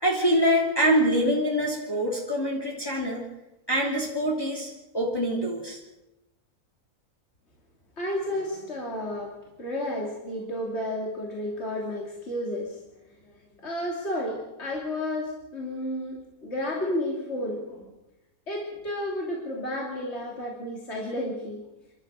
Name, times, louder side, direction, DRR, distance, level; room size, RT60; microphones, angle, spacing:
voice 1, 0.0-3.2 3.7-5.8, equal, 15° left, -2 dB, 2.9 m, -25 dB
voice 2, 8.0-12.8 13.2-13.4 13.6-17.9 18.5-21.6, left 1 dB, 45° left, -2 dB, 3.3 m, -32 dB
29.0 x 12.5 x 7.5 m, 0.99 s
omnidirectional pair, 1.6 m